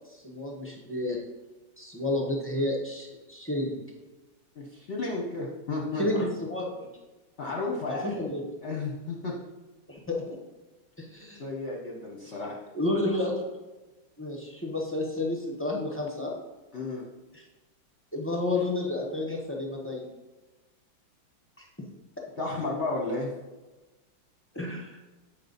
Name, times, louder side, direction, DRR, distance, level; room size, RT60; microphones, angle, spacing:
voice 1, 0.1-1.2 1.8-3.8 6.0-6.9 7.9-8.4 9.9-10.4 11.0-11.4 12.7-13.4 14.2-16.3 17.3-17.4 18.1-20.0 21.6-21.7 24.5-25.0, left 2 dB, 10° left, -1 dB, 0.7 m, -31 dB
voice 2, 4.5-6.2 7.4-8.1 8.6-9.3 11.4-12.6 16.7-17.0 22.4-23.3, left 3 dB, 45° left, -2 dB, 1.0 m, -32 dB
8.1 x 5.4 x 4.0 m, 1.2 s
omnidirectional pair, 2.1 m